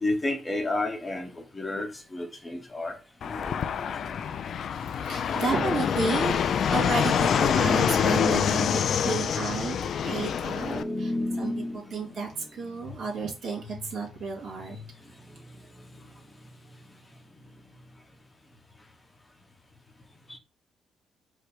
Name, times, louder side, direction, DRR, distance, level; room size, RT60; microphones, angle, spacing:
voice 1, 0.0-3.0 3.2-3.6 4.0-4.1 9.4-12.4 20.3-20.4, left 2 dB, 20° left, 0.9 m, -32 dB
Fixed-wing aircraft airplane, 3.2-10.8, left 8 dB, 60° left, 0.3 m, -26 dB
voice 2, 4.7-9.8 10.0-14.8, right 4 dB, 65° right, 2.1 m, -32 dB
4.8 x 2.1 x 4.7 m
cardioid pair, 90°, 0 cm